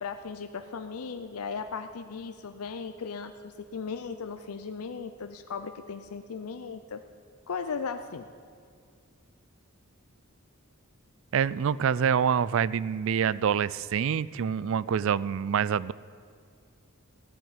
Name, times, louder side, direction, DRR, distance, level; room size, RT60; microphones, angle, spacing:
voice 1, 0.0-7.0 7.5-8.3, left 5 dB, 90° left, 8 dB, 0.6 m, -37 dB
voice 2, 11.3-15.9, right 7 dB, 65° right, 19 dB, 0.4 m, -26 dB
15.0 x 7.3 x 9.7 m, 2.2 s
head